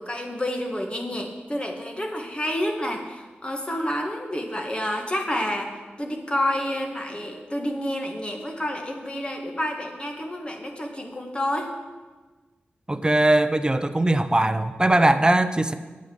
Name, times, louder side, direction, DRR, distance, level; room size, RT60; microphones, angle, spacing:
voice 1, 0.0-11.7, left 1 dB, 25° left, 2 dB, 2.0 m, -29 dB
voice 2, 12.9-15.7, right 1 dB, 20° right, 11 dB, 0.8 m, -20 dB
9.2 x 7.7 x 7.2 m, 1.3 s
cardioid pair, 45°, 4 cm